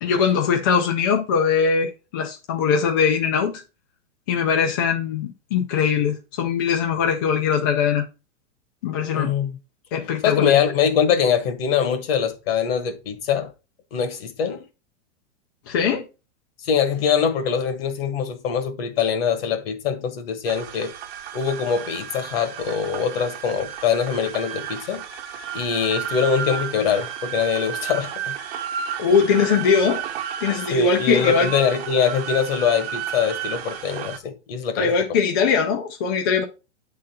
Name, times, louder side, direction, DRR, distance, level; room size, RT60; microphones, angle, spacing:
voice 1, 0.0-3.6 4.3-8.0 8.8-9.3 9.9-10.6 15.7-16.1 29.0-30.0 30.4-31.5 34.8-36.4, left 6 dB, 20° left, 0.3 m, -21 dB
voice 2, 9.1-9.6 10.2-13.5 13.9-14.6 16.6-20.9 21.3-25.0 25.5-28.3 30.7-34.9, left 7 dB, 55° left, 1.5 m, -23 dB
sound 1, 20.4-34.2, right 9 dB, 60° right, 1.1 m, -32 dB
8.5 x 3.8 x 4.2 m
supercardioid pair, 165°, 34 cm